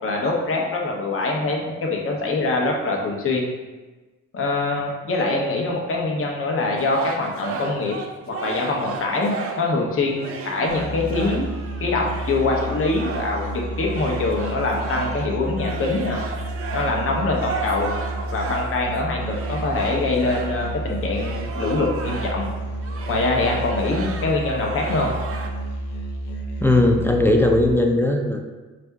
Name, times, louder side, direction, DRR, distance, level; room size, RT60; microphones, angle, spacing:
voice 1, 0.0-3.5 4.3-8.0 8.2-11.5 11.8-16.2 16.7-17.9 18.3-22.5 23.1-25.1, left 3 dB, 45° left, 0 dB, 0.8 m, -24 dB
sound 1, 6.8-9.8 10.1-22.5 22.8-25.5, right 5 dB, 50° right, 0.6 m, -34 dB
Musical instrument, 10.7-27.7, right 1 dB, 80° left, 0.8 m, -31 dB
voice 2, 26.6-28.4, left 2 dB, 10° left, 3 dB, 0.4 m, -18 dB
4.4 x 2.6 x 3.4 m, 1.3 s
cardioid pair, 90°, 30 cm